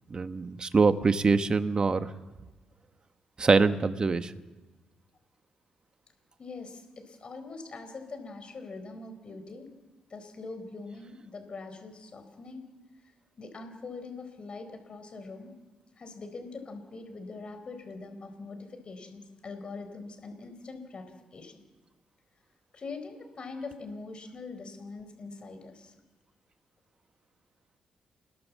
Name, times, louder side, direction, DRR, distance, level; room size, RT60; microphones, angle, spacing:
voice 1, 0.1-2.1 3.4-4.3, right 4 dB, 35° right, 10 dB, 1.2 m, -24 dB
voice 2, 6.4-9.7 10.1-12.6 13.4-15.5 16.0-21.1 21.3-21.6 22.7-25.9, left 3 dB, 40° left, 7 dB, 4.4 m, -43 dB
28.0 x 20.5 x 7.6 m, 1.2 s
cardioid pair, 105°, 3 cm